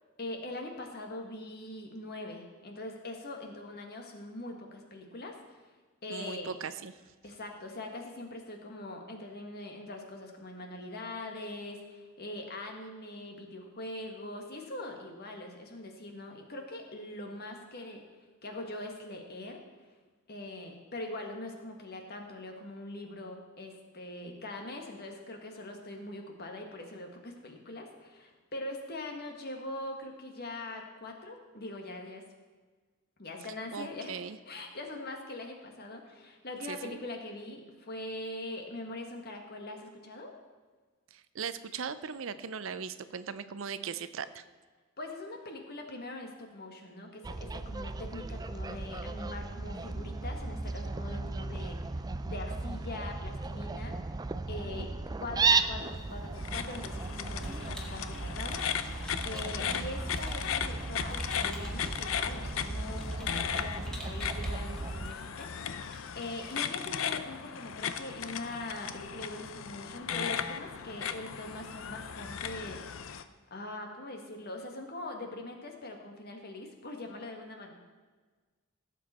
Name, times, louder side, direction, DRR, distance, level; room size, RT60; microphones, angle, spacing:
voice 1, 0.2-5.6 6.0-6.6 7.2-18.0 18.4-19.6 20.3-32.2 33.2-40.3 45.0-51.8 52.2-54.2 54.5-54.9 55.2-58.6 59.2-72.8 73.5-77.7, left 2 dB, 50° left, 3 dB, 1.7 m, -42 dB
voice 2, 6.1-6.9 33.7-34.4 36.7-37.0 41.1-44.4, right 6 dB, 65° right, 13 dB, 0.6 m, -39 dB
Fowl, 47.2-65.1, right 3 dB, 20° right, 0.3 m, -35 dB
sound 1, 55.8-66.9, equal, 5° left, 1.7 m, -52 dB
sound 2, 56.4-73.2, left 8 dB, 70° left, 0.6 m, -37 dB
16.5 x 7.7 x 4.3 m, 1.4 s
head